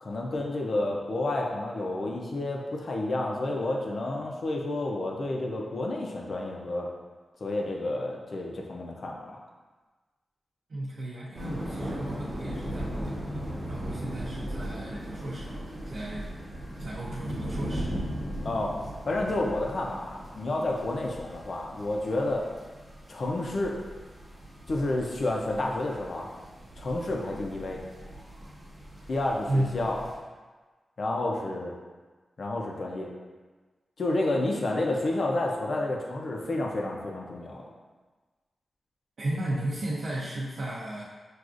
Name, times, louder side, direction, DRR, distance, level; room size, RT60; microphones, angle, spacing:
voice 1, 0.0-6.9 7.4-9.2 18.4-18.7 19.1-22.5 23.1-23.8 24.7-26.3 26.8-27.8 29.1-30.0 31.0-31.7 32.4-33.1 34.0-37.6, left 2 dB, 45° left, -1 dB, 0.5 m, -30 dB
voice 2, 10.7-16.3 16.8-17.9 29.4-29.9 39.2-41.0, right 1 dB, 60° right, -8 dB, 0.6 m, -34 dB
sound 1, 11.3-30.2, equal, 10° right, 0.9 m, -38 dB
6.0 x 2.4 x 2.5 m, 1.3 s
wide cardioid pair, 160°, 0 cm